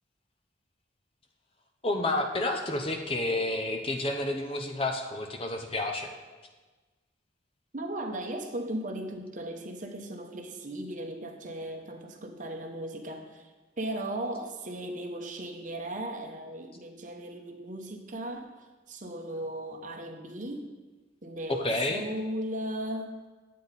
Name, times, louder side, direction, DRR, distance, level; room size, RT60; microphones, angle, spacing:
voice 1, 1.8-6.1 21.6-22.0, left 2 dB, 30° left, 4 dB, 0.7 m, -30 dB
voice 2, 7.7-20.7 21.2-23.1, right 1 dB, 40° right, 4 dB, 0.9 m, -37 dB
9.9 x 8.4 x 4.1 m, 1.3 s
head